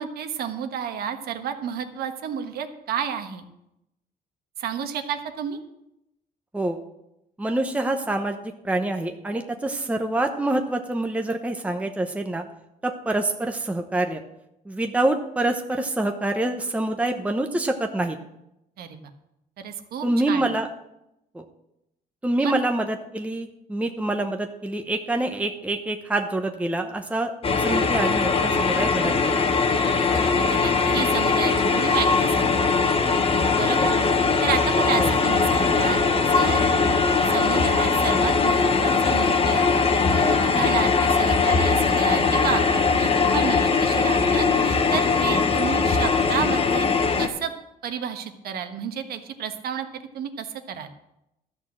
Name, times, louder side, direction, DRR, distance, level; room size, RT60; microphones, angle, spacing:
voice 1, 0.0-3.4 4.6-5.6 18.8-19.0 19.6-20.5 22.4-22.5 30.0-32.6 33.6-33.9 34.4-36.0 36.3-36.7 37.3-39.7 39.9-46.9 47.2-47.5 47.8-50.9, right 8 dB, 65° right, 7 dB, 1.4 m, -31 dB
voice 2, 7.4-8.4 8.6-12.4 12.8-14.2 14.7-18.2 20.0-20.7 21.3-21.4 22.2-29.4 33.8-34.0 35.0-35.2 45.3-45.4, right 2 dB, 10° right, 4 dB, 0.9 m, -26 dB
sound 1, 27.4-47.3, left 4 dB, 35° left, 1.2 m, -21 dB
13.0 x 6.3 x 7.5 m, 0.85 s
cardioid pair, 110°, 17 cm